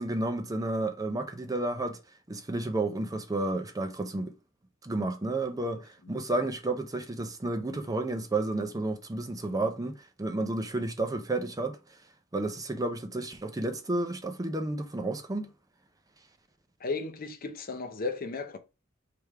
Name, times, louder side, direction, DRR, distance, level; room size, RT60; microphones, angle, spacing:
voice 1, 0.0-2.0 2.3-4.3 4.8-11.8 12.3-15.5, right 2 dB, 15° right, 0.5 m, -31 dB
voice 2, 16.8-18.6, left 3 dB, 45° left, 0.7 m, -34 dB
3.4 x 3.3 x 4.5 m
head